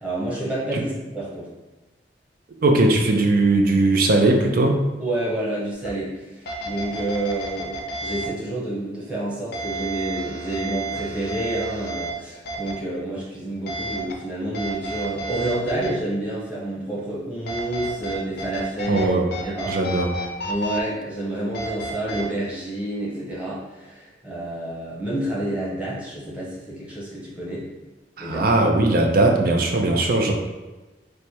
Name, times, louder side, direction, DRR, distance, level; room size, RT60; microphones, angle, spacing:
voice 1, 0.0-1.5 5.0-19.1 19.4-19.8 20.5-27.7 28.2-28.5, right 1 dB, 10° right, -8 dB, 1.0 m, -29 dB
voice 2, 2.6-4.8 18.9-19.3 19.7-20.1 28.2-30.3, right 2 dB, 55° right, 3 dB, 0.5 m, -19 dB
sound 1, 5.8-5.9 6.5-8.3 9.5-12.1 12.5-12.7 13.7-14.1 14.5-15.9 17.5-19.1 19.3-20.8 21.5-22.2, right 1 dB, 60° left, 0.5 m, -31 dB
3.2 x 2.1 x 4.2 m, 1.2 s
head